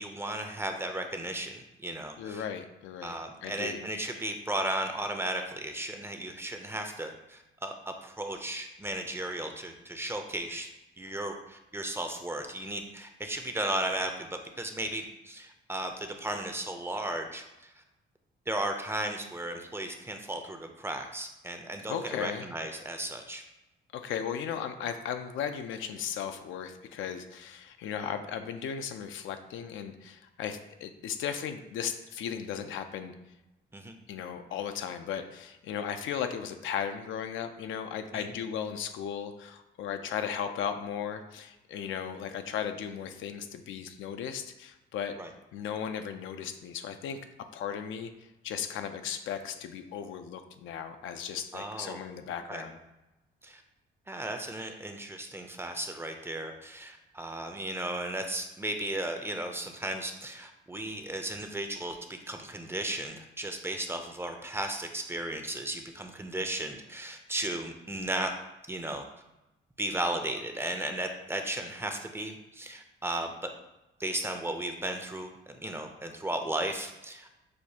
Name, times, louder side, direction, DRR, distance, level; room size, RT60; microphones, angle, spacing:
voice 1, 0.0-2.4 3.0-10.7 11.0-17.7 18.5-23.4 33.7-33.9 38.1-38.3 45.2-45.3 51.5-52.0 52.5-52.7 53.4-53.6 54.1-68.3 68.7-69.0 69.8-73.5 74.0-77.4, right 1 dB, 10° right, 5 dB, 0.5 m, -35 dB
voice 2, 2.2-3.1 3.4-3.8 21.9-22.5 23.9-33.1 34.1-45.2 45.5-47.2 47.5-48.1 48.4-52.8, left 8 dB, 80° left, 7 dB, 0.5 m, -36 dB
6.3 x 2.4 x 2.8 m, 0.98 s
cardioid pair, 90°, 20 cm